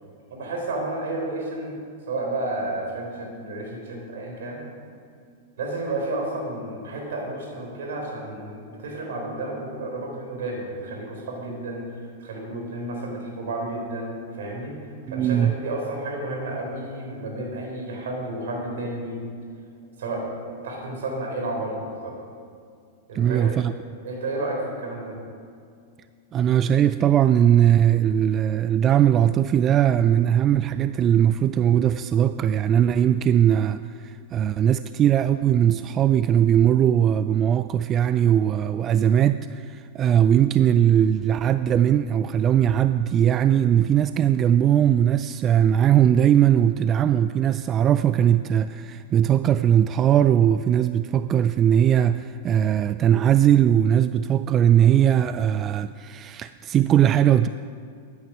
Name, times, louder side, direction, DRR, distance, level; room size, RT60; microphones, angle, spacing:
voice 1, 0.3-1.8 2.1-4.6 5.6-11.9 12.2-14.8 15.1-19.3 20.0-22.1 23.1-23.5 24.0-25.2, right 2 dB, 75° right, 3.8 m, -31 dB
voice 2, 15.1-15.6 23.1-23.7 26.3-57.5, right 10 dB, 30° right, 0.3 m, -20 dB
12.5 x 9.6 x 6.1 m
hypercardioid pair, 110°, 0 cm